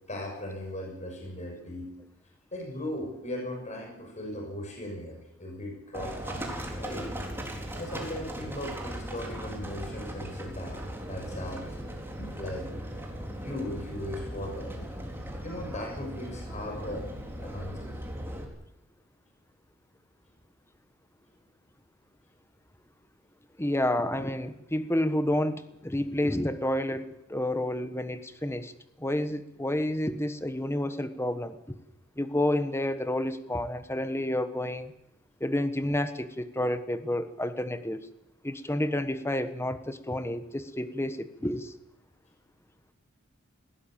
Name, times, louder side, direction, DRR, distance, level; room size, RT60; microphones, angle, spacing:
voice 1, 0.1-2.0 2.5-6.5 6.8-7.1 7.7-11.7 12.2-12.8 13.4-14.9 15.4-17.1 17.4-18.0, left 1 dB, 35° left, 1 dB, 6.3 m, -38 dB
Livestock farm animals working animals, 5.9-18.5, equal, 10° right, 3.9 m, -38 dB
voice 2, 23.6-28.7 29.0-31.8 32.2-34.9 35.4-38.0 38.4-41.7, left 1 dB, 10° left, 11 dB, 1.3 m, -30 dB
20.0 x 17.0 x 9.0 m, 0.91 s
head